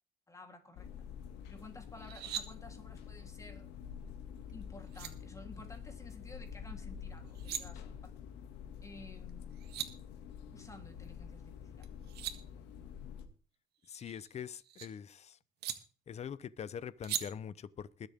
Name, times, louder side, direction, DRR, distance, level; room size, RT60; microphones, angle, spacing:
voice 1, 0.3-1.1 1.5-3.7 4.5-8.1 8.8-9.6 10.5-11.9, left 2 dB, 20° left, 3.5 m, -53 dB
sound 1, 0.7-13.3, left 8 dB, 90° left, 2.1 m, -48 dB
sound 2, 2.0-2.4 4.5-4.6 4.9-5.1 7.2-7.6 9.3-9.4 9.5-9.9 11.8-12.4 13.8-14.9 15.6-15.8 17.0-17.2, right 11 dB, 75° right, 1.9 m, -39 dB
voice 2, 13.9-15.4 16.1-18.1, left 8 dB, 40° left, 0.8 m, -43 dB
21.0 x 7.8 x 3.7 m
cardioid pair, 110°, 17 cm